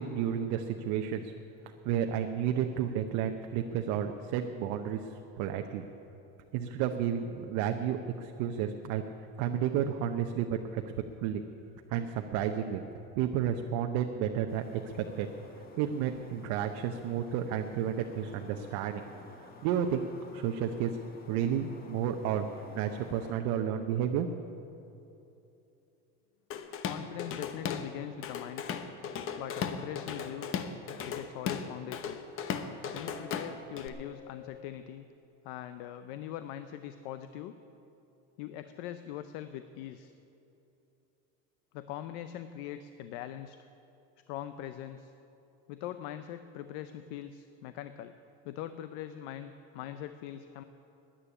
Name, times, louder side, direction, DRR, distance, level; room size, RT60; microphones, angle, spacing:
voice 1, 0.0-1.3 1.8-5.0 5.4-5.8 6.5-9.0 9.4-10.8 11.2-11.4 11.9-12.8 13.2-15.3 15.8-19.0 19.6-20.1 20.3-20.9 21.3-22.5 22.7-24.4, right 9 dB, 65° right, 5 dB, 0.8 m, -31 dB
sound 1, 14.5-23.3, left 3 dB, 30° left, 1.4 m, -52 dB
Drum kit / Drum, 26.5-27.9 28.2-33.9, left 7 dB, 45° left, 1.0 m, -36 dB
voice 2, 26.8-28.8 29.4-30.7 31.0-32.2 32.9-35.1 35.4-37.5 38.4-40.1 41.7-43.6 44.3-45.1 45.7-48.1 48.4-50.6, left 11 dB, 80° left, 11 dB, 0.6 m, -42 dB
Subway metro underground, 32.2-32.6 32.9-34.6, equal, ahead, 1.5 m, -52 dB
10.0 x 9.9 x 9.8 m, 2.9 s
cardioid pair, 135°, 30 cm